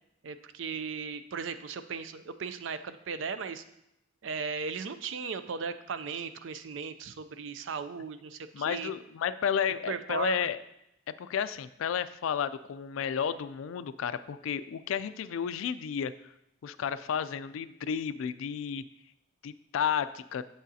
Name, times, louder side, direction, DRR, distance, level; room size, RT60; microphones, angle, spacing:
voice 1, 0.2-3.6 4.2-8.9 9.9-10.5, right 5 dB, 70° right, 11 dB, 0.4 m, -37 dB
voice 2, 8.5-10.6 11.1-16.1 16.6-18.8 19.4-20.4, left 8 dB, 80° left, 14 dB, 0.3 m, -32 dB
7.9 x 6.3 x 2.7 m, 0.80 s
head